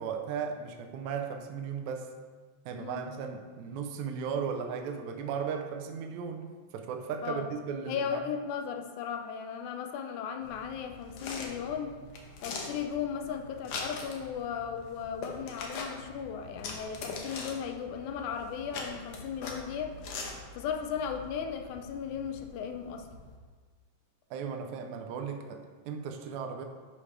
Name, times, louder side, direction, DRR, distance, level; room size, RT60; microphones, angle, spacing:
voice 1, 0.0-2.1 2.7-8.2 24.3-26.6, right 6 dB, 80° right, 4 dB, 2.0 m, -36 dB
voice 2, 7.9-12.0 12.4-20.0 20.6-23.1, left 7 dB, 85° left, 5 dB, 2.0 m, -36 dB
sound 1, 10.4-23.4, left 3 dB, 65° left, 1.6 m, -43 dB
11.0 x 5.7 x 3.3 m, 1.4 s
omnidirectional pair, 3.3 m